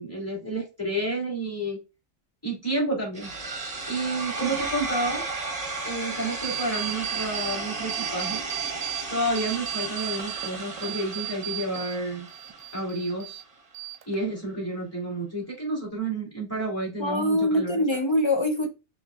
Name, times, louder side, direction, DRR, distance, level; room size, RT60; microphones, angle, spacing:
voice 1, 0.0-1.8 2.4-3.3 3.9-5.2 5.8-8.4 9.1-12.3 12.7-13.4 14.1-18.0, right 1 dB, 10° left, 2.4 m, -30 dB
sound 1, 3.1-13.1, right 3 dB, 30° right, 1.0 m, -34 dB
sound 2, 6.4-7.6 7.9-9.0 9.4-12.0 12.3-13.4 13.7-14.4, right 16 dB, 75° right, 1.0 m, -35 dB
voice 2, 17.0-18.7, left 1 dB, 35° left, 0.5 m, -23 dB
6.0 x 3.1 x 2.4 m
omnidirectional pair, 1.4 m